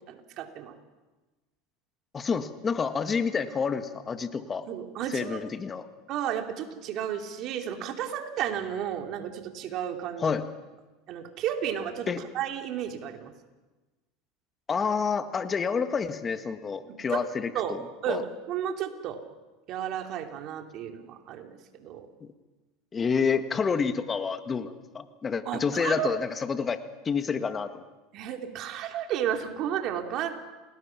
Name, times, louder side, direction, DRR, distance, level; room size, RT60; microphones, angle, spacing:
voice 1, 0.1-0.7 4.7-5.4 6.1-10.3 11.1-13.3 16.9-17.2 17.5-17.8 18.0-19.2 19.7-22.1 25.4-26.1 28.1-30.3, right 9 dB, 55° right, 4 dB, 3.0 m, -33 dB
voice 2, 2.1-4.7 5.1-5.8 10.2-10.5 12.1-12.2 14.7-18.2 22.9-27.8, left 5 dB, 25° left, 9 dB, 1.7 m, -29 dB
28.5 x 20.0 x 6.0 m, 1.2 s
supercardioid pair, 100°, 0 cm